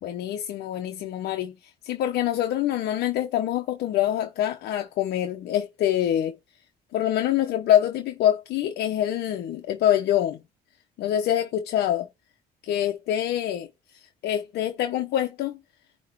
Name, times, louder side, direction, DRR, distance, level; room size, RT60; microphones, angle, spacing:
voice 1, 0.0-1.5 1.8-6.4 6.9-10.4 11.0-12.1 12.6-13.7 14.2-15.6, left 11 dB, 75° left, 1.1 m, -25 dB
9.6 x 3.2 x 4.7 m
cardioid pair, 110°, 17 cm